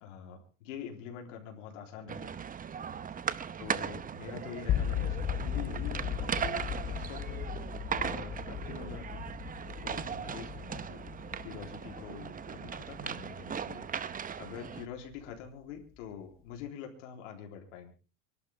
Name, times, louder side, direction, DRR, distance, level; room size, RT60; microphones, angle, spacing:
voice 1, 0.0-2.4 3.6-7.6 7.9-9.3 9.8-11.2 11.4-17.9, left 8 dB, 90° left, 2 dB, 3.6 m, -45 dB
sound 1, 2.1-14.8, right 7 dB, 25° right, 0.9 m, -38 dB
sound 2, 4.7-14.7, left 9 dB, 35° left, 0.8 m, -37 dB
26.0 x 11.5 x 3.5 m, 0.36 s
supercardioid pair, 115°, 36 cm